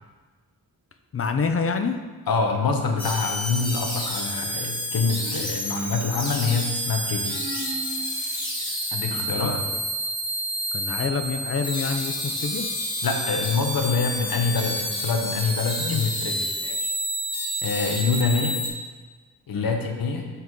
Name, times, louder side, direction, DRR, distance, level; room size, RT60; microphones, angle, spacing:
voice 1, 1.1-1.9 9.2-9.6 10.7-12.7 15.9-16.1 16.6-16.9 19.5-19.7, left 5 dB, 40° left, 7 dB, 0.4 m, -27 dB
voice 2, 2.3-7.4 8.9-9.5 13.0-16.5 17.6-18.6 19.5-20.3, left 4 dB, 70° left, 3 dB, 0.8 m, -25 dB
sound 1, 3.0-18.7, equal, 10° left, 1.2 m, -29 dB
sound 2, 4.0-4.4 5.2-6.1 7.3-8.1, right 3 dB, 55° right, 1.0 m, -38 dB
5.7 x 4.5 x 3.7 m, 1.3 s
wide cardioid pair, 135°, 37 cm